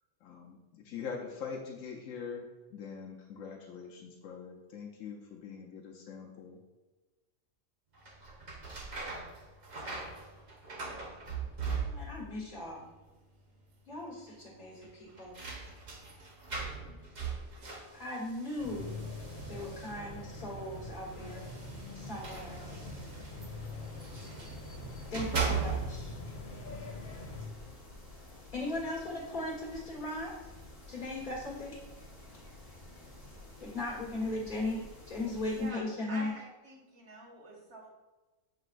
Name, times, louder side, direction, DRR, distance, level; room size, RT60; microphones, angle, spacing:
voice 1, 0.2-6.6, left 6 dB, 90° left, 0 dB, 1.1 m, -43 dB
sound 1, 8.0-12.4 12.6-13.3 13.6-13.7 14.8-20.2 21.1-24.6 25.0-26.2, right 5 dB, 40° right, 0.9 m, -39 dB
voice 2, 11.9-12.9 13.9-15.3 16.8-17.0 17.9-18.9 19.5-21.5 21.9-22.6 25.1-26.1 28.5-30.3 30.9-31.8 32.3-32.4 33.6-36.3, left 2 dB, 35° left, -5 dB, 1.7 m, -38 dB
sound 2, 18.6-27.5, left 2 dB, 65° left, 1.5 m, -44 dB
sound 3, 20.3-35.7, left 2 dB, 15° left, 1.3 m, -52 dB
voice 3, 36.1-37.9, right 2 dB, 55° right, -2 dB, 1.5 m, -46 dB
8.0 x 4.8 x 2.5 m, 1.2 s
omnidirectional pair, 1.4 m